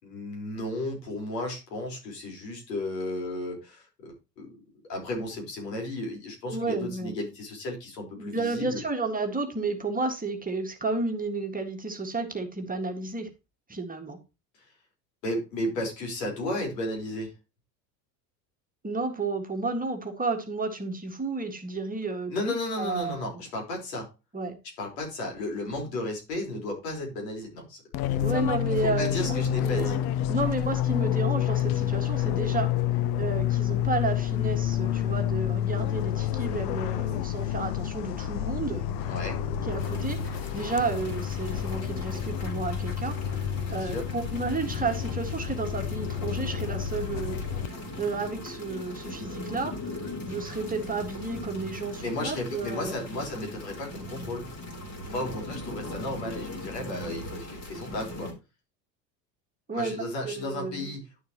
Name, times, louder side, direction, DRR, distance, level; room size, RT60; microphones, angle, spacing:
voice 1, 0.0-4.5 4.9-8.8 14.6-14.7 15.2-17.3 22.3-24.1 24.8-27.8 28.8-30.0 39.0-39.4 43.7-44.1 52.0-54.5 55.1-58.3 59.7-61.2, left 1 dB, 75° left, 4.6 m, -34 dB
voice 2, 6.5-7.1 8.2-13.3 13.7-14.2 18.8-22.3 22.8-23.4 24.3-24.6 28.2-30.0 30.3-32.7 33.2-38.8 39.4-47.4 48.0-50.0 50.2-53.0 59.7-60.9, right 3 dB, 15° right, 1.8 m, -32 dB
Fixed-wing aircraft airplane, 27.9-47.7, left 11 dB, 50° left, 0.8 m, -29 dB
sound 1, 39.8-58.3, left 1 dB, 30° left, 3.8 m, -40 dB
11.0 x 6.6 x 3.0 m
hypercardioid pair, 75°, 49 cm